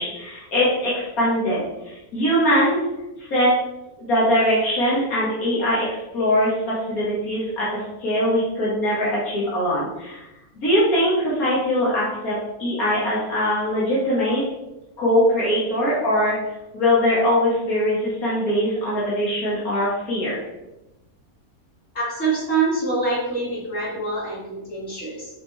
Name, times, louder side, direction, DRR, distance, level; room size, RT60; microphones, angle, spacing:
voice 1, 0.0-2.8 3.2-3.5 4.0-5.9 6.1-10.2 10.6-14.4 15.0-20.4, equal, 85° left, -8 dB, 2.5 m, -22 dB
voice 2, 21.9-25.3, right 3 dB, 60° left, -7 dB, 3.4 m, -25 dB
7.4 x 5.6 x 4.2 m, 0.98 s
omnidirectional pair, 1.5 m